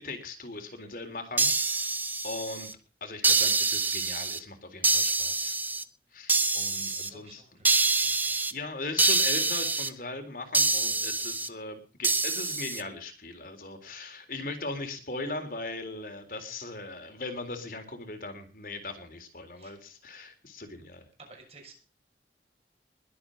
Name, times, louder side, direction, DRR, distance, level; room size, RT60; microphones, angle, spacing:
voice 1, 0.0-2.0 2.2-2.7 3.0-5.5 6.1-7.4 8.1-8.2 8.5-21.1, left 2 dB, 50° left, 6 dB, 3.8 m, -39 dB
sound 1, 1.4-2.7 3.2-4.4 4.8-5.8 6.3-7.1 7.6-8.5 9.0-9.9 10.5-11.5 12.0-12.8, right 3 dB, 10° right, 0.7 m, -26 dB
voice 2, 6.7-8.5 19.5-19.9 21.2-21.7, right 3 dB, 35° right, 2 dB, 6.4 m, -53 dB
21.5 x 8.5 x 5.3 m, 0.38 s
head